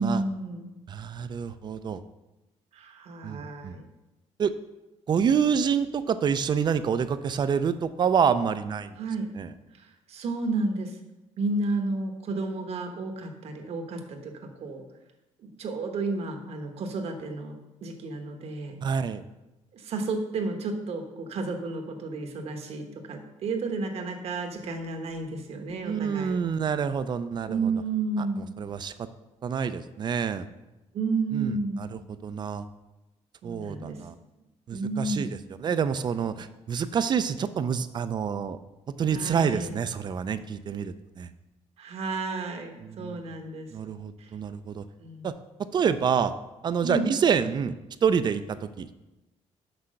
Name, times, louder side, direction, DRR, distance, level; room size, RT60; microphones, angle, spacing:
voice 1, 0.0-0.7 2.7-3.9 9.0-9.3 9.7-11.0 11.4-14.8 15.4-18.8 19.7-26.4 27.5-28.6 30.9-31.8 33.4-34.0 34.7-35.3 39.1-39.7 41.8-43.7 44.2-44.3 45.0-45.3 46.8-47.1, right 3 dB, 60° right, 5 dB, 1.1 m, -32 dB
voice 2, 0.9-2.0 3.2-3.7 4.4-4.5 5.1-9.0 9.4-9.5 18.8-19.2 25.8-27.6 28.6-28.9 29.4-30.5 31.3-31.9 32.2-32.6 33.4-34.1 34.7-35.3 35.6-38.6 39.0-41.3 42.8-43.2 43.7-44.8 45.2-45.3 45.7-46.3 46.6-47.7 48.0-48.9, right 7 dB, 35° right, 12 dB, 0.4 m, -27 dB
6.1 x 5.6 x 6.4 m, 1.0 s
cardioid pair, 140°, 12 cm